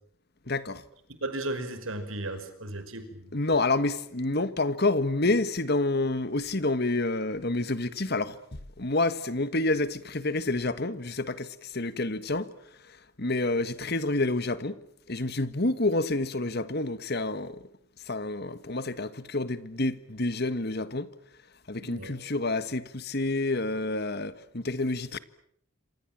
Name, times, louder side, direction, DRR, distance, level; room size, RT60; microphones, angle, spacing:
voice 1, 0.5-0.8 3.3-8.4 8.8-12.5 13.2-14.8 15.1-17.6 18.1-21.1 21.7-25.2, left 2 dB, 50° left, 1.6 m, -28 dB
voice 2, 1.2-3.3 21.8-22.1, right 2 dB, 70° right, 5.4 m, -35 dB
27.0 x 27.0 x 7.6 m
head